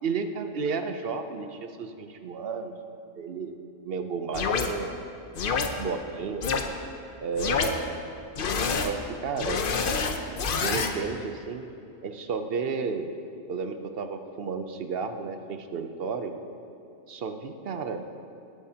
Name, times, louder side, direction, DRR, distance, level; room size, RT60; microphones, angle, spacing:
voice 1, 0.0-2.7 3.1-3.5 3.8-4.9 5.8-6.6 7.2-8.0 8.7-9.6 10.6-11.7 12.0-13.1 13.5-16.4 17.1-18.0, right 5 dB, 55° right, 7 dB, 0.8 m, -32 dB
sound 1, 4.3-4.7 5.4-5.7 6.4-6.6 7.4-7.7 8.4-8.9 9.4-10.9, left 5 dB, 50° left, 0.8 m, -26 dB
19.0 x 8.3 x 2.8 m, 2.7 s
omnidirectional pair, 1.3 m